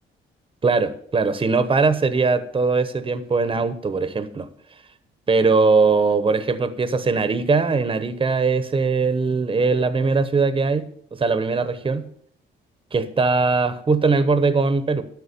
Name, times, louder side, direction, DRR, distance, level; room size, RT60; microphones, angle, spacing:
voice 1, 0.6-4.5 5.3-10.9 11.2-12.1 12.9-15.0, right 4 dB, 25° right, 12 dB, 1.0 m, -20 dB
11.5 x 6.4 x 6.7 m, 0.63 s
cardioid pair, 90°, 20 cm